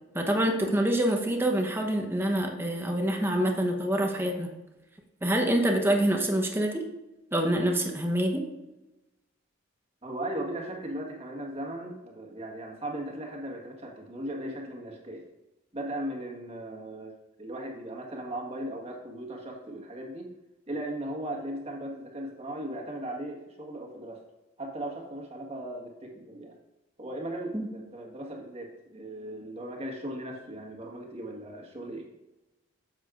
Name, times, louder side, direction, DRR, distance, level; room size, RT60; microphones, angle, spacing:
voice 1, 0.1-4.5 5.2-6.8 7.3-8.4 27.5-27.7, right 1 dB, 10° right, 2 dB, 0.9 m, -26 dB
voice 2, 10.0-15.2 15.7-17.1 17.4-20.3 20.7-24.2 24.6-26.5 27.0-32.1, right 1 dB, 30° right, -1 dB, 1.5 m, -37 dB
9.5 x 7.4 x 2.5 m, 1.0 s
head